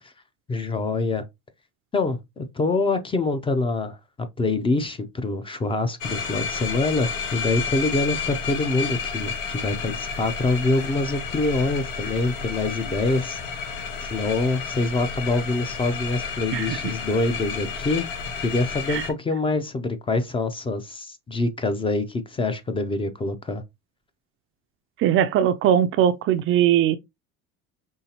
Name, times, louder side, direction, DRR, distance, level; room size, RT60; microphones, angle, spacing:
voice 1, 0.5-1.2 1.9-4.0 4.4-13.4 14.0-18.1 18.4-23.6, left 2 dB, 15° left, 0.5 m, -25 dB
sound 1, 6.0-19.1, left 6 dB, 90° left, 1.2 m, -31 dB
voice 2, 25.0-27.0, right 10 dB, 45° right, 0.4 m, -20 dB
5.5 x 3.2 x 2.8 m
cardioid pair, 145°, 32 cm